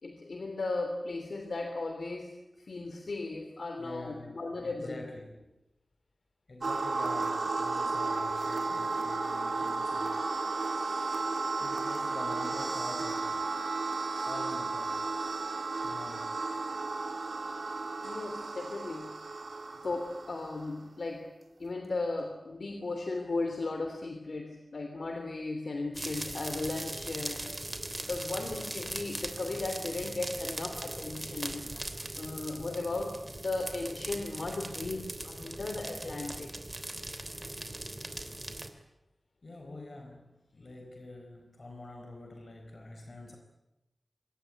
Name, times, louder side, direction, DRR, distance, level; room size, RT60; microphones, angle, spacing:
voice 1, 0.0-5.1 18.0-19.2 19.8-21.3 21.6-27.6 28.0-31.7 32.2-36.5, left 3 dB, 85° left, 5 dB, 3.2 m, -36 dB
voice 2, 3.8-5.5 6.5-10.2 11.6-13.6 14.2-15.1 15.8-16.5 39.4-43.4, left 2 dB, 65° left, 3 dB, 4.2 m, -46 dB
sound 1, 6.6-20.7, right 3 dB, 85° right, 3.0 m, -33 dB
sound 2, 25.9-38.7, right 1 dB, 30° right, 3.2 m, -40 dB
25.5 x 21.0 x 9.8 m, 0.96 s
wide cardioid pair, 65°, 0 cm